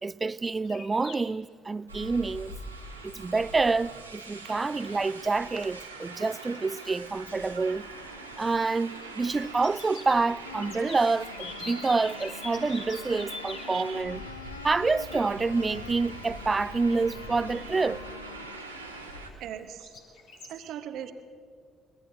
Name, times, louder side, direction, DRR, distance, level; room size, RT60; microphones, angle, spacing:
voice 1, 0.0-2.6 3.0-7.9 8.4-14.2 14.6-18.0, right 3 dB, 25° right, 0.3 m, -27 dB
sound 1, 0.6-19.5 19.8-20.5, left 3 dB, 60° left, 2.4 m, -47 dB
sound 2, 1.9-19.3, right 2 dB, 85° right, 1.2 m, -43 dB
sound 3, 10.4-19.3, left 9 dB, 80° left, 0.4 m, -46 dB
voice 2, 13.7-14.0 17.5-17.7 19.4-19.9 20.5-21.1, right 10 dB, 55° right, 1.0 m, -40 dB
24.0 x 21.5 x 2.7 m
figure-of-eight pair, 50°, 0 cm